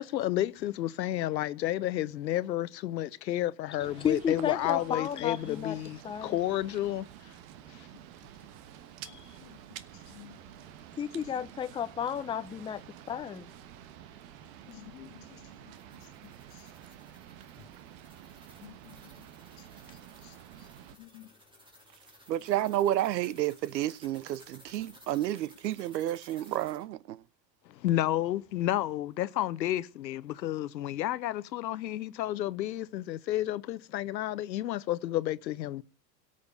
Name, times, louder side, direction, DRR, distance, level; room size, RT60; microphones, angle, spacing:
voice 1, 0.0-7.3 7.7-7.9 27.7-35.8, left 13 dB, 90° left, 0.9 m, -31 dB
voice 2, 3.8-5.8 6.0-6.4 9.0-9.4 11.0-12.8 13.1-13.5, left 8 dB, 10° left, 0.5 m, -33 dB
sound 1, 3.8-21.0, right 12 dB, 55° right, 1.3 m, -50 dB
voice 3, 9.0-9.6 9.9-10.5 11.2-11.4 14.4-16.7 17.6-17.7 18.6-19.3 19.6-19.7 20.2-20.4 20.9-21.3, left 16 dB, 55° left, 1.6 m, -54 dB
sound 2, 15.5-26.9, equal, 10° right, 2.8 m, -58 dB
voice 4, 22.3-27.2, right 13 dB, 85° right, 0.8 m, -30 dB
17.0 x 6.8 x 6.8 m
hypercardioid pair, 120°, 50 cm